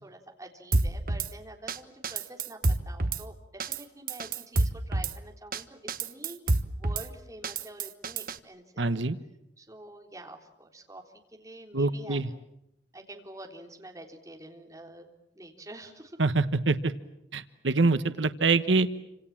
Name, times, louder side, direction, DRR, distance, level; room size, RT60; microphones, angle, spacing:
voice 1, 0.0-8.9 9.6-11.0 11.4-12.2 12.9-15.1 15.3-16.2, right 1 dB, 20° right, 2 dB, 3.7 m, -47 dB
Drum kit / Snare drum, 0.7-1.3 1.7-1.8 2.0-3.2 3.6-3.8 4.1-5.1 5.5-5.6 5.9-7.1 7.4-8.4, right 2 dB, 50° right, 1.2 m, -28 dB
voice 2, 8.8-9.2 11.7-12.3 16.2-16.9 17.3-18.9, right 3 dB, 90° right, 11 dB, 1.2 m, -25 dB
28.5 x 26.5 x 7.4 m, 0.84 s
head